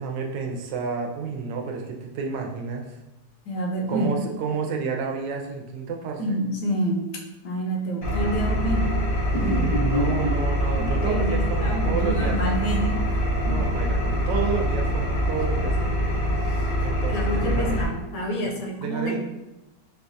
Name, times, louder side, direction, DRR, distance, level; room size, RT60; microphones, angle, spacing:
voice 1, 0.0-3.0 3.9-6.4 9.3-12.4 13.4-16.1 16.4-17.8 18.4-18.5 18.8-19.2, right 5 dB, 75° right, 2 dB, 1.2 m, -30 dB
voice 2, 3.5-4.1 6.2-7.1 7.4-9.0 9.3-10.3 10.8-13.1 13.5-13.8 17.1-19.2, equal, 75° left, 0 dB, 1.2 m, -28 dB
Engine, 8.0-17.9, equal, 50° left, 0.6 m, -24 dB
4.6 x 2.2 x 2.6 m, 0.97 s
omnidirectional pair, 2.0 m